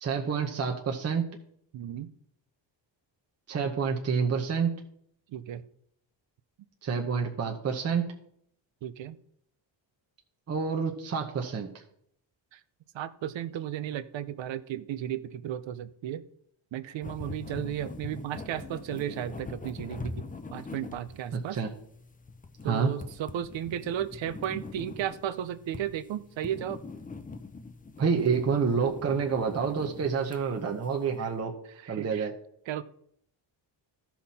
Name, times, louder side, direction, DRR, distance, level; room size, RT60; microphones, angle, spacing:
voice 1, 0.0-1.3 3.5-4.8 6.8-8.1 10.5-11.7 21.3-21.7 22.6-22.9 28.0-31.5 31.9-32.3, right 6 dB, 35° right, 1 dB, 0.9 m, -28 dB
voice 2, 1.7-2.1 5.3-5.7 8.8-9.2 12.5-12.6 12.9-16.2 16.7-20.2 20.5-21.6 22.6-26.8 31.2-31.3 31.7-32.3 32.7-32.8, right 11 dB, 75° right, 13 dB, 0.7 m, -34 dB
sound 1, 17.0-31.3, left 3 dB, 20° left, 0.6 m, -43 dB
14.5 x 5.9 x 4.2 m, 0.70 s
wide cardioid pair, 155°, 46 cm